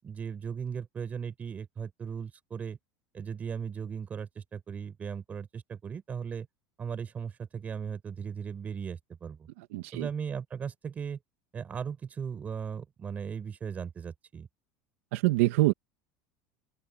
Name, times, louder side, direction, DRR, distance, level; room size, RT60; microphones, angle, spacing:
voice 1, 0.0-2.8 3.1-6.5 6.8-9.5 9.9-11.2 11.5-14.5, right 7 dB, 20° right, 7.5 m, -37 dB
voice 2, 9.6-10.1 15.1-15.7, right 19 dB, 80° right, 2.3 m, -25 dB
open air
cardioid pair, 155°, 7 cm